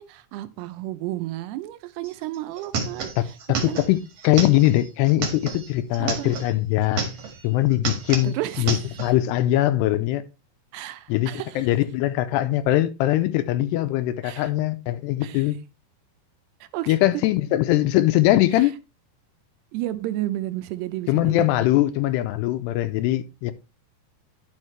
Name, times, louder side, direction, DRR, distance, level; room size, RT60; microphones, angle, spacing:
voice 1, 0.0-3.1 3.5-3.8 6.0-6.3 8.2-9.0 10.7-11.7 14.2-14.5 15.2-15.5 16.6-17.0 19.7-21.5, right 15 dB, 80° right, 2.7 m, -32 dB
sound 1, 2.0-2.1 2.3-6.5 6.8-7.5 7.7-9.1, right 5 dB, 50° right, 2.2 m, -30 dB
voice 2, 3.6-4.0 4.2-7.0 7.4-10.2 11.1-11.3 11.6-15.6 16.9-18.7 21.1-23.5, left 15 dB, 85° left, 2.6 m, -21 dB
11.0 x 5.7 x 3.2 m
omnidirectional pair, 4.9 m